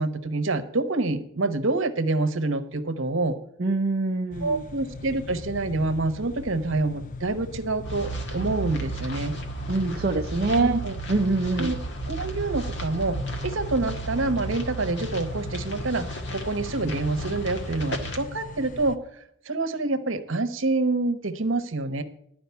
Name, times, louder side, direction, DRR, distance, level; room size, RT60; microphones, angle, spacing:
voice 1, 0.0-3.4 4.4-9.4 10.6-10.9 11.6-11.8 12.1-13.2 13.4-19.0 19.4-22.0, right 2 dB, 65° right, 9 dB, 1.0 m, -27 dB
voice 2, 3.6-4.6 9.7-10.8 11.1-11.7, right 3 dB, 45° right, 0 dB, 0.6 m, -24 dB
sound 1, 4.3-19.0, left 3 dB, 40° left, 0.5 m, -39 dB
sound 2, 7.8-18.2, right 2 dB, 55° left, 1.5 m, -34 dB
12.0 x 5.1 x 8.2 m, 0.70 s
head